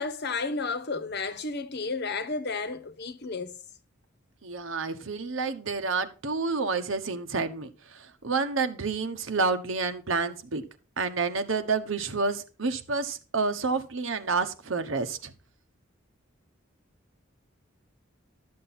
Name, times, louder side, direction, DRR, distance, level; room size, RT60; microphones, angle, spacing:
voice 1, 0.0-3.6, left 4 dB, 55° left, 1.0 m, -32 dB
voice 2, 4.4-10.6 11.0-15.3, right 4 dB, 80° right, 1.2 m, -29 dB
12.5 x 7.6 x 4.3 m
head